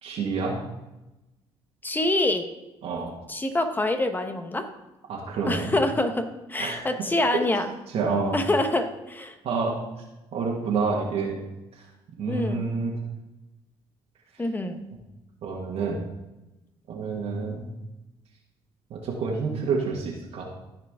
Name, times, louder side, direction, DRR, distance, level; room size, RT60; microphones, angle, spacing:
voice 1, 0.0-0.6 2.8-3.1 5.1-5.7 6.6-6.8 7.3-7.4 7.9-8.4 9.4-9.8 10.3-11.4 12.2-12.9 15.4-16.0 16.9-17.7 18.9-20.5, right 4 dB, 65° right, -3 dB, 1.8 m, -28 dB
voice 2, 1.8-2.5 3.3-4.7 5.4-7.7 8.3-9.3 12.3-12.7 14.4-14.8, left 2 dB, 15° left, 7 dB, 1.1 m, -26 dB
14.5 x 4.9 x 3.7 m, 0.99 s
cardioid pair, 85°, 11 cm